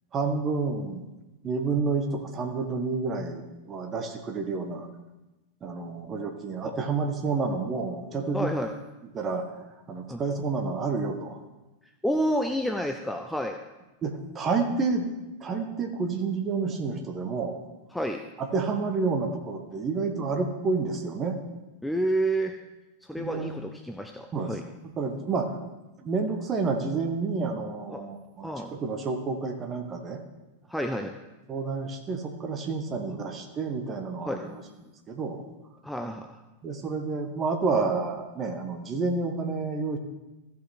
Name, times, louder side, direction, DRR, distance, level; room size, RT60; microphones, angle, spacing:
voice 1, 0.1-1.1 1.4-4.9 5.6-8.5 9.1-9.5 9.9-11.4 14.0-15.1 15.4-17.6 18.4-21.4 23.2-23.5 24.3-24.6 25.0-25.6 26.0-30.2 31.5-35.4 36.6-40.0, right 4 dB, 25° right, 5 dB, 1.4 m, -29 dB
voice 2, 8.3-8.7 10.1-10.2 12.0-13.6 17.9-18.2 21.8-22.6 23.0-24.6 27.9-28.0 28.4-28.7 30.7-31.1 34.3-34.4 35.8-36.4, equal, 5° left, 5 dB, 0.5 m, -29 dB
14.5 x 5.7 x 4.4 m, 1.1 s
figure-of-eight pair, 90°, 0 cm